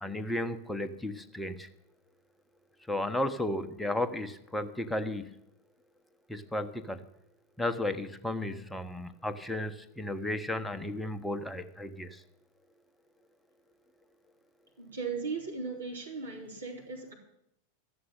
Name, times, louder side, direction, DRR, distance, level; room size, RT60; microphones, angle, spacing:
voice 1, 0.0-1.7 2.9-5.3 6.3-7.0 7.6-12.2, left 1 dB, 5° left, 9 dB, 1.1 m, -34 dB
voice 2, 14.8-17.1, right 4 dB, 75° right, -1 dB, 3.6 m, -37 dB
13.0 x 7.9 x 9.9 m, 0.80 s
figure-of-eight pair, 90°, 0 cm